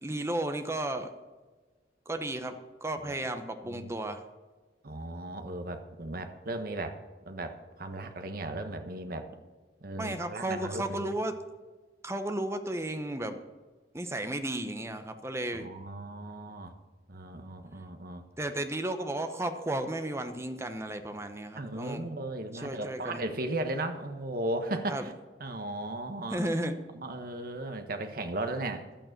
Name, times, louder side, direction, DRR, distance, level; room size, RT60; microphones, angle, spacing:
voice 1, 0.0-1.1 2.1-2.5 2.8-4.2 10.0-11.3 12.0-13.4 13.9-15.7 18.4-22.0 22.5-23.2 24.9-25.0 26.3-26.8, right 1 dB, 15° right, 7 dB, 0.9 m, -33 dB
voice 2, 4.8-7.0 7.3-9.3 9.8-11.1 15.5-16.8 17.1-18.2 21.5-25.1 25.4-26.5 26.9-28.9, right 2 dB, 55° right, 7 dB, 1.2 m, -36 dB
11.5 x 9.0 x 6.6 m, 1.3 s
head